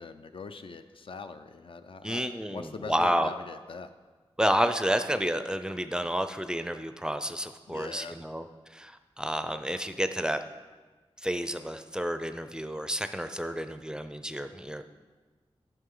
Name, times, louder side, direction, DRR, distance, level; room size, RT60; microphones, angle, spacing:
voice 1, 0.0-3.9 7.7-8.2, left 4 dB, 60° left, 9 dB, 0.5 m, -42 dB
voice 2, 2.0-3.3 4.4-10.4 11.2-14.8, equal, 5° right, 9 dB, 0.4 m, -30 dB
11.0 x 6.1 x 3.8 m, 1.3 s
wide cardioid pair, 80°, 10 cm